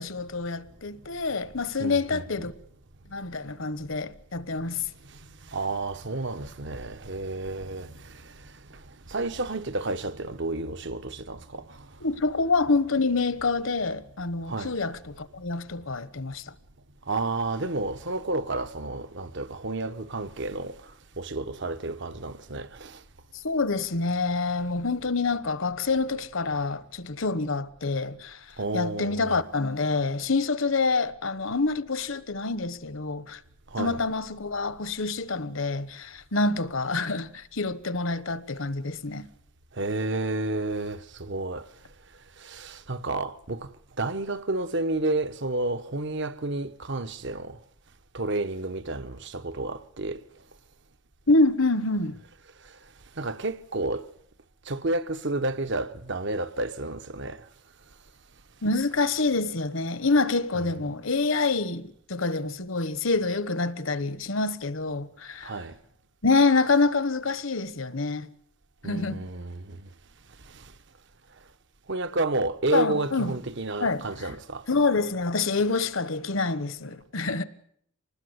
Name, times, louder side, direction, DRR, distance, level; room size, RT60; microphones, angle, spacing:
voice 1, 0.0-2.5 3.1-4.8 12.0-16.5 23.3-28.4 28.7-33.4 33.8-39.3 51.3-52.2 58.6-65.5 66.2-68.3 68.8-69.2 72.7-73.3 73.8-74.4 74.7-77.4, left 3 dB, 65° left, 1.1 m, -27 dB
voice 2, 1.8-2.5 5.5-8.8 9.1-11.9 14.5-14.7 17.1-23.0 28.6-29.4 33.7-34.0 39.7-41.7 42.4-43.7 44.0-47.6 48.1-50.2 53.2-54.1 54.7-57.4 60.5-60.7 65.4-65.8 68.8-69.9 70.5-70.7 71.9-74.6, right 2 dB, 55° right, 1.1 m, -31 dB
25.0 x 20.0 x 8.1 m
head